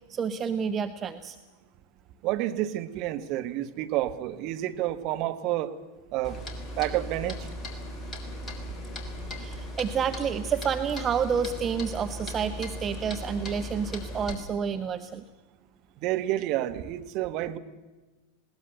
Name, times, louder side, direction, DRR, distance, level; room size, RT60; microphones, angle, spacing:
voice 1, 0.1-1.4 9.4-15.2, right 7 dB, 25° right, 9 dB, 0.9 m, -29 dB
voice 2, 2.2-5.7 6.1-6.4 6.8-7.4 16.0-17.6, right 14 dB, 40° right, 8 dB, 1.4 m, -29 dB
Clock, 6.2-14.4, equal, 20° left, 3.5 m, -37 dB
20.5 x 18.5 x 8.0 m, 1.2 s
figure-of-eight pair, 90°, 0 cm